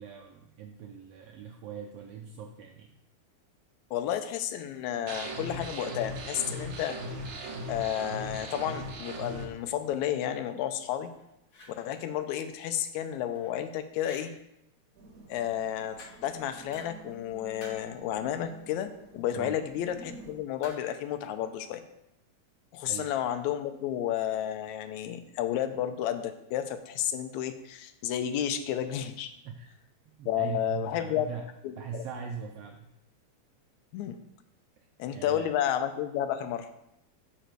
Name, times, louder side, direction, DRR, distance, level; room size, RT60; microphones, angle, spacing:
voice 1, 0.0-2.9 19.3-19.6 22.9-23.1 29.4-29.7 30.2-31.4 31.7-32.9 35.1-35.5, right 7 dB, 90° right, 2 dB, 1.4 m, -40 dB
voice 2, 3.9-7.0 7.7-11.1 11.8-14.3 15.3-21.8 22.7-29.3 30.3-31.3 31.6-32.0 33.9-34.2 35.0-36.7, left 10 dB, 80° left, 9 dB, 1.8 m, -32 dB
sound 1, 5.1-9.4, right 1 dB, 65° right, 1.4 m, -38 dB
sound 2, 11.0-11.8 13.1-13.6 14.0-14.3 16.0-16.4 16.7-17.2 17.6-18.0 20.6-21.0, left 2 dB, 60° left, 0.9 m, -50 dB
sound 3, 14.9-20.3, right 2 dB, 40° right, 1.4 m, -51 dB
6.8 x 5.0 x 4.5 m, 0.84 s
omnidirectional pair, 3.4 m